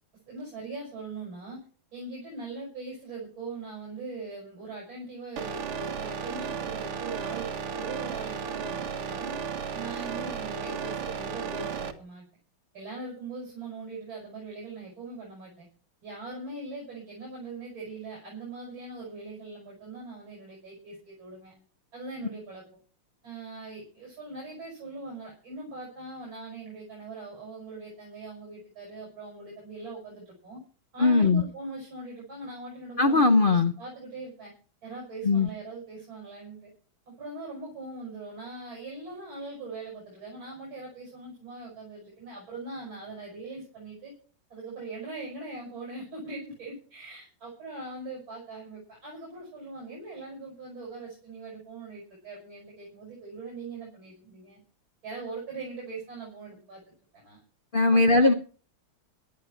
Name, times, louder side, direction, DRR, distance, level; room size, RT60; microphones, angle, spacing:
voice 1, 0.3-1.6 1.9-9.3 9.7-12.3 12.7-15.7 16.0-21.5 21.9-22.6 23.2-30.6 30.9-34.5 34.8-36.7 37.1-44.1 44.5-54.6 55.0-57.4 57.8-58.3, right 3 dB, 65° right, -2 dB, 7.3 m, -41 dB
sound 1, 5.4-11.9, right 6 dB, 85° right, 2.4 m, -34 dB
voice 2, 31.0-31.4 33.0-33.7 35.2-35.5 57.7-58.3, left 3 dB, 60° left, 8 dB, 0.5 m, -20 dB
18.0 x 12.0 x 4.5 m, 0.39 s
omnidirectional pair, 2.4 m